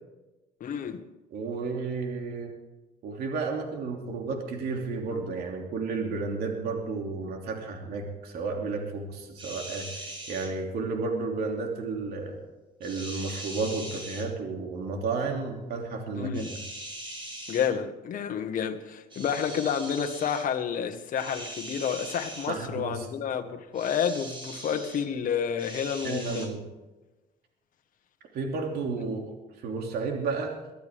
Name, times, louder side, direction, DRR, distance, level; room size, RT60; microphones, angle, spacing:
voice 1, 0.6-1.0 16.1-16.5 17.5-26.5 29.0-29.1, left 7 dB, 55° left, 1.7 m, -30 dB
voice 2, 1.3-2.5 3.0-12.4 12.8-16.4 22.5-23.1 26.0-26.6 28.3-30.5, right 4 dB, 70° right, 3.0 m, -32 dB
sound 1, 9.4-10.5 12.8-14.3 16.3-17.7 19.1-20.5 21.1-22.5 23.7-25.0 25.6-26.5, right 1 dB, 30° right, 6.4 m, -41 dB
22.5 x 13.0 x 3.7 m
cardioid pair, 110°, 17 cm